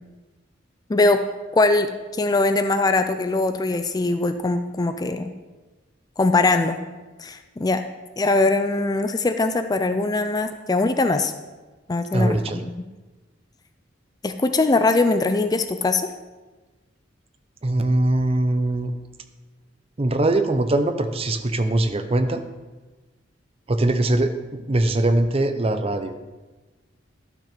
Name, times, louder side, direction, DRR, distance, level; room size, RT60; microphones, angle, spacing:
voice 1, 0.9-1.2 1.5-5.3 6.2-6.8 7.2-7.8 8.2-11.3 11.9-12.7 14.2-16.1, left 3 dB, 20° left, 9 dB, 0.4 m, -21 dB
voice 2, 12.1-12.6 17.6-18.9 20.0-22.4 23.7-26.1, right 1 dB, 30° right, 8 dB, 0.6 m, -22 dB
12.0 x 6.0 x 5.0 m, 1.2 s
head